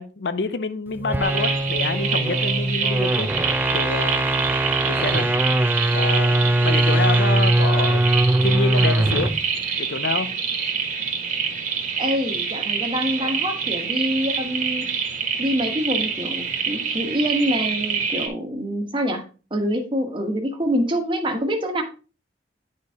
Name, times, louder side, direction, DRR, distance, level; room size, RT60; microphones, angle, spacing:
voice 1, 0.0-3.3 3.7-4.4 4.9-5.3 5.9-8.0 8.4-9.3 9.8-10.3, left 4 dB, 70° left, 0.6 m, -27 dB
sound 1, 1.0-9.5, right 1 dB, 10° right, 0.3 m, -21 dB
sound 2, 1.2-18.3, right 6 dB, 45° right, 1.4 m, -26 dB
voice 2, 12.0-14.8 15.4-19.2 19.5-21.8, equal, 25° right, 1.2 m, -25 dB
9.5 x 4.3 x 3.5 m
head